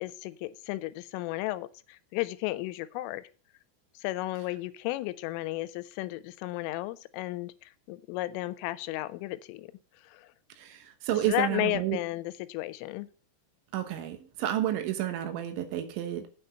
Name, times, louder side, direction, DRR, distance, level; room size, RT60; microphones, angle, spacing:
voice 1, 0.0-3.2 4.0-9.7 10.0-10.3 11.3-13.1, left 17 dB, 90° left, 15 dB, 3.2 m, -34 dB
voice 2, 10.6-12.0 13.7-16.3, right 12 dB, 75° right, 8 dB, 3.4 m, -31 dB
8.9 x 5.9 x 6.6 m, 0.39 s
omnidirectional pair, 5.6 m